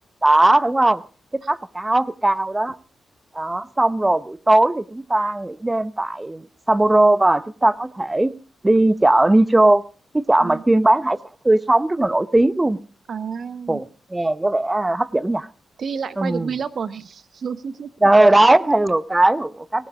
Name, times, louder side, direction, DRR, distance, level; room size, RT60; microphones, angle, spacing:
voice 1, 0.2-1.0 1.3-2.8 3.3-8.3 8.6-9.8 10.1-11.2 11.4-12.8 13.7-13.9 14.1-15.5 16.2-16.5 18.0-19.9, right 2 dB, 20° right, 0.8 m, -18 dB
voice 2, 13.1-13.8 15.8-17.9, right 6 dB, 65° right, 1.0 m, -30 dB
18.5 x 12.0 x 4.8 m
cardioid pair, 55°, 0 cm